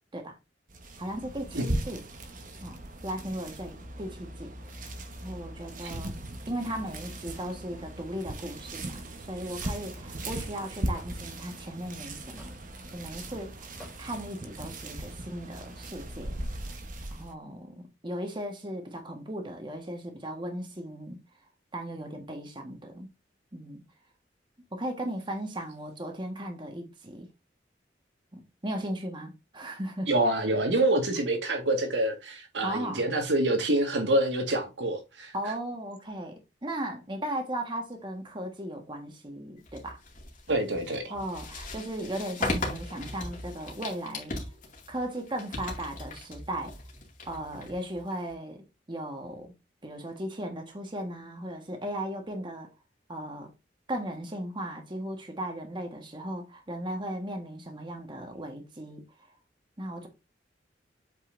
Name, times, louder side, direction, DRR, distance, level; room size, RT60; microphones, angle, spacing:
sound 1, 0.7-17.3, right 1 dB, 45° right, 1.1 m, -38 dB
voice 1, 1.0-2.0 2.6-4.5 5.2-6.1 6.5-12.5 12.9-13.6 14.0-16.4 17.1-21.2 21.7-23.1 23.5-23.8 24.7-27.3 28.3-30.1 32.6-33.1 35.3-40.0 41.1-44.3 44.9-46.7 47.2-49.5 49.8-52.7 53.1-53.5 53.9-59.3 59.8-60.1, right 1 dB, 25° right, 1.4 m, -37 dB
Hammer / Wood, 9.6-9.8 10.9-11.1 12.4-12.7 13.8-14.0, equal, 5° left, 3.3 m, -45 dB
voice 2, 30.1-35.3 40.5-41.1, right 1 dB, 80° right, 1.8 m, -26 dB
sound 2, 39.7-48.3, left 2 dB, 45° left, 2.2 m, -38 dB
8.1 x 5.4 x 2.6 m
head